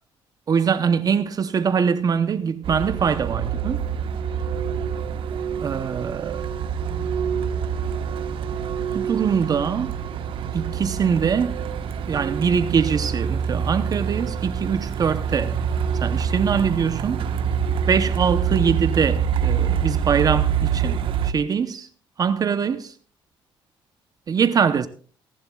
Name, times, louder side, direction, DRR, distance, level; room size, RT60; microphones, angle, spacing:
voice 1, 0.5-3.8 5.6-6.4 8.9-10.0 10.5-11.6 12.1-15.6 16.0-17.3 17.9-21.9 22.2-22.9 24.3-24.9, right 6 dB, 45° right, 0.8 m, -23 dB
Truck, 2.6-21.3, right 7 dB, 70° right, 1.2 m, -26 dB
28.5 x 11.0 x 2.3 m
cardioid pair, 105°, 9 cm